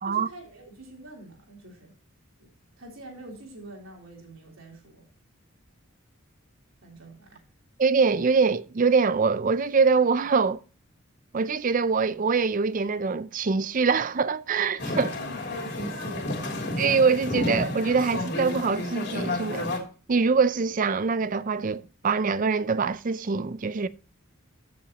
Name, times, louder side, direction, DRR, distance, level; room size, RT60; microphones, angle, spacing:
voice 1, 0.1-1.9 2.4-2.5 2.8-5.1 6.8-7.4 15.2-16.3, right 1 dB, 75° right, 3.6 m, -44 dB
voice 2, 7.8-10.6 11.3-15.2 16.8-19.8 20.1-23.9, right 5 dB, 40° right, 0.4 m, -24 dB
sound 1, 14.8-19.8, left 2 dB, 55° left, 2.9 m, -31 dB
14.5 x 7.2 x 2.9 m
head